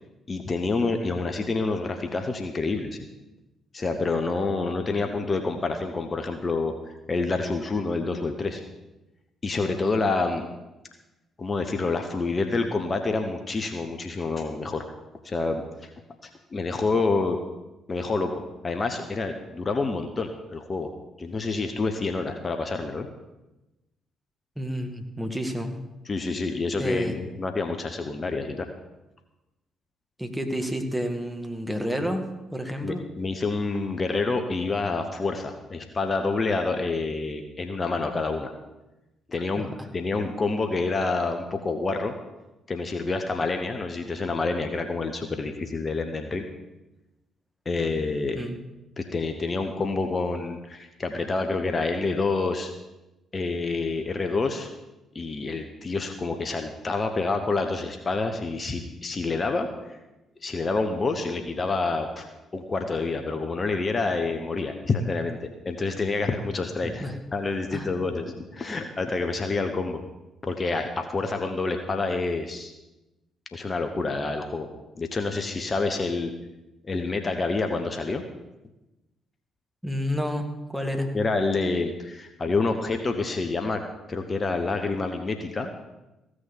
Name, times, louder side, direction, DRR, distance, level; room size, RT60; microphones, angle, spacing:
voice 1, 0.3-3.0 3.7-6.7 7.1-8.6 9.4-10.5 11.4-14.8 15.2-15.9 16.2-17.4 17.9-20.9 21.2-23.1 26.0-28.7 32.8-38.5 39.3-42.1 42.7-46.5 47.6-48.4 49.0-52.7 53.3-54.7 55.1-59.7 60.4-62.3 62.5-70.0 70.4-72.7 73.5-74.7 75.0-76.3 76.8-78.2 81.1-83.8 84.1-85.7, left 3 dB, 35° left, 6 dB, 1.2 m, -28 dB
voice 2, 24.6-25.8 26.8-27.2 30.2-33.0 39.6-39.7 48.3-48.6 66.8-67.1 67.7-67.9 79.8-81.1, equal, 5° right, 3 dB, 2.0 m, -30 dB
15.5 x 6.4 x 7.4 m, 1.0 s
figure-of-eight pair, 40°, 0 cm